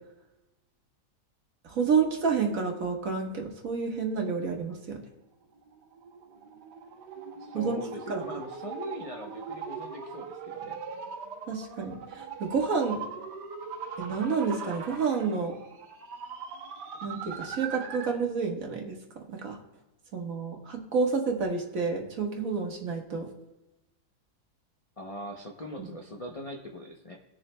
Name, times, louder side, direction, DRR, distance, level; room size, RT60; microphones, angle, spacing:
voice 1, 1.6-5.0 7.5-7.8 8.1-8.2 11.5-13.0 14.0-15.5 17.0-19.6 20.1-23.3 25.8-25.9, right 5 dB, 55° right, 1 dB, 1.6 m, -29 dB
sound 1, 5.5-18.2, right 6 dB, 85° right, 1.5 m, -40 dB
voice 2, 7.4-10.8 25.0-27.2, left 1 dB, 45° left, 1 dB, 0.4 m, -41 dB
19.0 x 7.1 x 2.2 m, 1.0 s
omnidirectional pair, 1.7 m